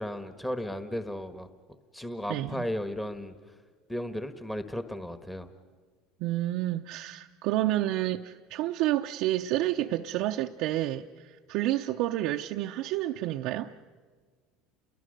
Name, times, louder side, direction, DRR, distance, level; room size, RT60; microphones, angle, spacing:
voice 1, 0.0-1.5 1.9-3.3 3.9-5.5, equal, 5° left, 1.5 m, -35 dB
voice 2, 2.3-2.7 6.2-13.7, right 15 dB, 65° right, 0.7 m, -29 dB
29.5 x 22.0 x 6.7 m
supercardioid pair, 95°, 0 cm